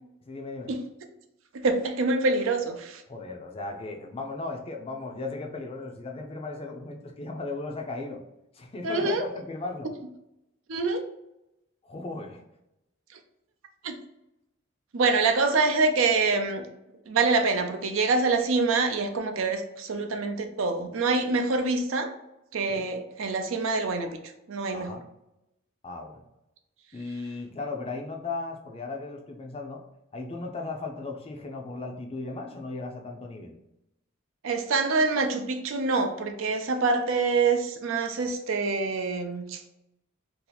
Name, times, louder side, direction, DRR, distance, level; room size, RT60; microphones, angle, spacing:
voice 1, 0.3-0.7 3.1-8.2 8.5-9.9 11.8-12.4 22.7-22.9 24.7-25.0 25.8-26.2 26.9-29.8 30.1-33.6, left 3 dB, 30° left, 0.5 m, -36 dB
voice 2, 1.5-3.0 8.8-9.2 10.7-11.0 13.8-14.0 14.9-16.7 17.1-22.1 22.5-24.1 24.5-25.0 34.4-39.6, right 3 dB, 70° right, 0.5 m, -25 dB
2.8 x 2.5 x 3.9 m
head